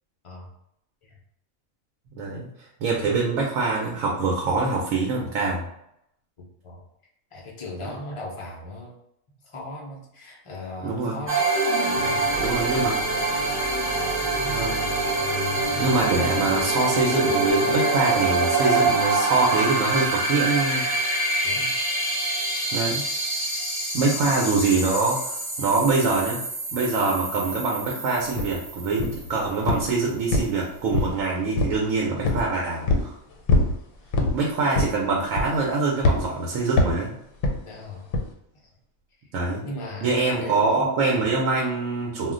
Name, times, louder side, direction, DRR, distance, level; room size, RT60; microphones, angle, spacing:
voice 1, 2.1-2.5 2.8-5.6 10.8-11.2 12.4-13.0 14.4-14.8 15.8-20.9 22.7-23.0 23.9-25.3 25.6-26.4 26.7-33.2 34.3-37.1 39.3-39.6 40.0-42.3, right 3 dB, 75° right, -1 dB, 1.0 m, -24 dB
voice 2, 7.3-8.9 9.5-11.4 11.9-13.4 14.0-14.6 21.4-21.8 37.6-38.2 39.6-40.9, left 1 dB, 50° left, -2 dB, 0.3 m, -38 dB
sound 1, 11.3-29.7, right 2 dB, 10° right, 0.7 m, -25 dB
sound 2, 28.4-28.5 29.0-29.3 29.7-29.9 30.3-31.2 31.6-31.8 32.2-32.5 32.9-33.1 33.5-33.7 34.1-34.4 34.7-35.0 35.4-35.7 36.0-36.2 36.8-37.0 37.4-37.6 38.1-38.3, left 2 dB, 80° left, 1.0 m, -22 dB
2.4 x 2.1 x 3.6 m, 0.77 s
omnidirectional pair, 1.4 m